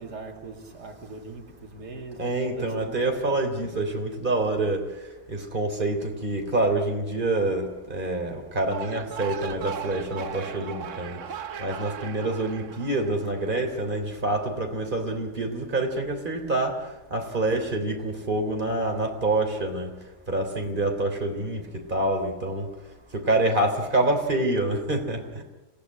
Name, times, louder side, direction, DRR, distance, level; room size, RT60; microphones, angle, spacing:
voice 1, 0.0-3.3, right 3 dB, 90° right, 2.9 m, -41 dB
voice 2, 2.2-4.8 5.3-11.2 11.6-16.7 17.1-19.9 20.3-21.6 21.9-22.7 23.1-25.4, right 2 dB, 30° right, 3.5 m, -26 dB
sound 1, 8.6-13.9, right 8 dB, 55° right, 1.3 m, -38 dB
26.5 x 17.5 x 9.7 m
omnidirectional pair, 1.7 m